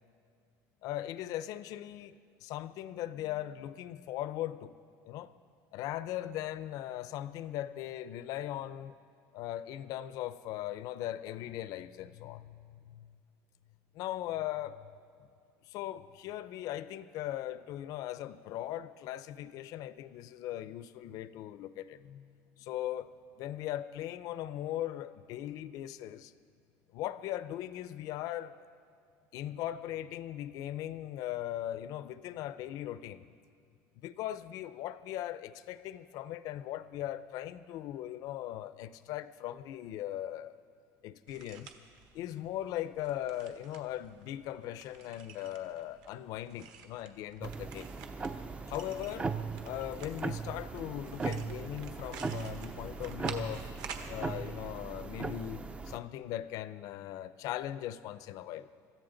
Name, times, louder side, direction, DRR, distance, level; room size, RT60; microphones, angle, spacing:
voice 1, 0.8-2.2 2.4-4.7 5.0-5.3 5.7-9.0 9.3-13.2 13.9-14.9 15.6-22.3 22.6-26.3 26.9-28.6 29.3-33.3 33.9-40.5 41.0-41.7 42.1-47.9 48.7-49.3 49.6-53.7 54.1-58.7, left 13 dB, 55° left, 0.5 m, -39 dB
sound 1, 41.3-54.1, right 7 dB, 55° right, 1.3 m, -50 dB
sound 2, 47.4-56.0, right 4 dB, 15° right, 0.4 m, -39 dB
25.0 x 14.0 x 3.9 m
cardioid pair, 155°, 7 cm